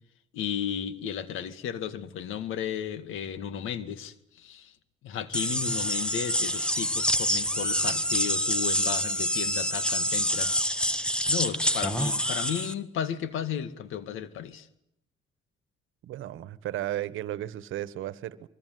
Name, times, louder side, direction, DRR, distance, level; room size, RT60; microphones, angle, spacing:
voice 1, 0.3-4.7 5.0-10.5 11.3-14.7, left 9 dB, 85° left, 2.1 m, -34 dB
sound 1, 5.3-12.7, equal, 5° left, 1.6 m, -27 dB
voice 2, 16.0-18.5, right 13 dB, 85° right, 1.4 m, -34 dB
25.5 x 23.0 x 9.4 m
cardioid pair, 90°, 20 cm